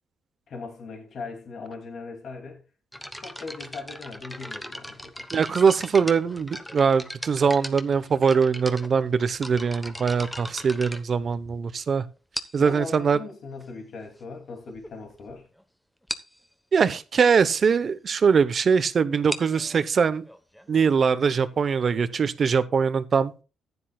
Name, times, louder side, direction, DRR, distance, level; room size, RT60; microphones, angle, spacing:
voice 1, 0.5-2.6 3.2-5.3 12.6-15.5, left 4 dB, 60° left, 2.6 m, -39 dB
sound 1, 2.9-11.7 12.3-12.8 13.6-13.7 14.3-14.4 14.7-14.9 15.2-15.3 15.6-15.7 16.1-16.4 19.1-22.5, equal, 5° left, 1.1 m, -39 dB
voice 2, 5.3-12.0 12.5-13.2 16.7-20.2 20.7-23.3, right 6 dB, 45° right, 0.9 m, -22 dB
14.5 x 9.9 x 2.3 m
cardioid pair, 90°, 0 cm